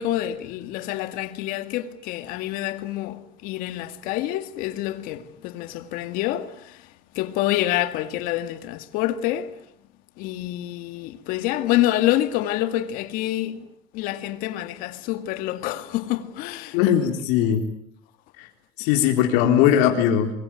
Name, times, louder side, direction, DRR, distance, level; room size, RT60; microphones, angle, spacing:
voice 1, 0.0-6.9 7.1-9.6 10.2-13.7 13.9-17.2, left 14 dB, 60° left, 2.2 m, -27 dB
voice 2, 16.7-17.6 18.4-18.5 18.8-20.3, left 10 dB, 90° left, 3.8 m, -19 dB
25.5 x 23.5 x 9.1 m
cardioid pair, 170°, 16 cm